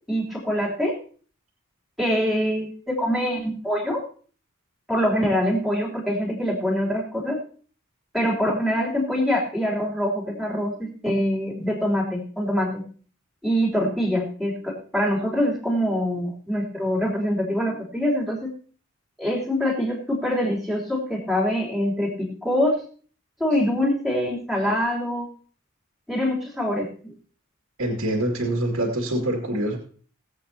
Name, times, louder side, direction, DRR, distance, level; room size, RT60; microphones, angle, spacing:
voice 1, 0.1-1.0 2.0-4.0 4.9-7.4 8.1-12.8 13.4-18.5 19.2-22.8 23.4-25.3 26.1-27.1, equal, ahead, -4 dB, 3.2 m, -24 dB
voice 2, 27.8-29.8, right 1 dB, 75° right, 0 dB, 2.2 m, -25 dB
20.5 x 8.2 x 2.8 m, 0.42 s
head